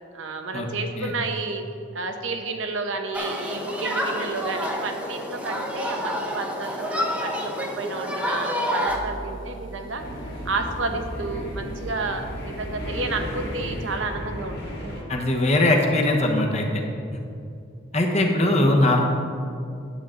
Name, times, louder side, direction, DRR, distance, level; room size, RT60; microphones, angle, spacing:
voice 1, 0.1-1.6 1.9-10.0 10.4-15.0, right 3 dB, 80° right, 5 dB, 0.9 m, -31 dB
Human group actions, 3.1-9.0, equal, 5° right, 0.8 m, -28 dB
sound 1, 8.9-14.0, right 2 dB, 80° left, 2.2 m, -41 dB
sound 2, 10.0-15.0, equal, 55° left, 1.9 m, -34 dB
voice 2, 15.1-16.8 17.9-19.0, left 1 dB, 35° left, 1 dB, 1.0 m, -20 dB
10.0 x 7.8 x 3.8 m, 2.5 s
head